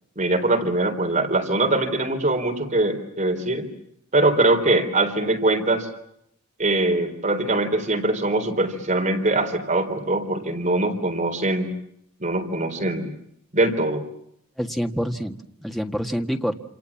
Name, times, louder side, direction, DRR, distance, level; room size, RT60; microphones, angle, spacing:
voice 1, 0.2-3.7 4.1-5.9 6.6-11.7 12.2-13.1 13.5-14.0, right 2 dB, 35° right, 4 dB, 3.9 m, -22 dB
voice 2, 14.6-16.5, equal, ahead, 4 dB, 1.7 m, -27 dB
28.5 x 28.5 x 7.3 m, 0.74 s
head